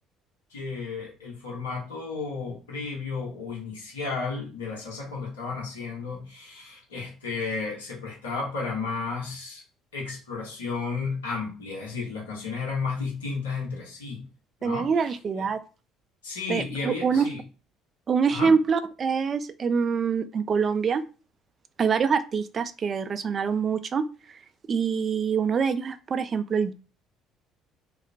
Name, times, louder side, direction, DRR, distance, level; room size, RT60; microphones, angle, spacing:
voice 1, 0.5-9.6 9.9-14.2 14.6-14.9 15.4-15.5 16.2-17.4 18.3-18.5, left 4 dB, 85° left, -3 dB, 1.0 m, -33 dB
voice 2, 14.6-15.6 16.5-17.3 18.1-21.0 21.8-26.7, right 6 dB, 40° right, 11 dB, 0.3 m, -25 dB
2.3 x 2.0 x 2.5 m, 0.34 s
hypercardioid pair, 55°, 0 cm